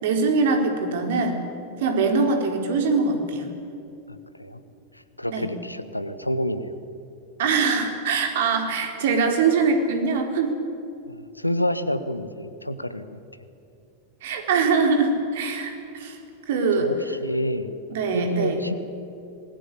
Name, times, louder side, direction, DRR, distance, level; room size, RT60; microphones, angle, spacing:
voice 1, 0.0-1.4 1.8-3.5 5.3-5.5 7.4-10.5 14.2-16.2 16.5-16.9 17.9-18.6, right 4 dB, 55° right, 4 dB, 4.0 m, -23 dB
voice 2, 4.1-4.6 4.9-6.7 11.1-13.2 16.8-17.7 18.1-18.8, equal, 85° left, 13 dB, 1.2 m, -28 dB
26.0 x 21.0 x 8.5 m, 2.7 s
figure-of-eight pair, 90°, 0 cm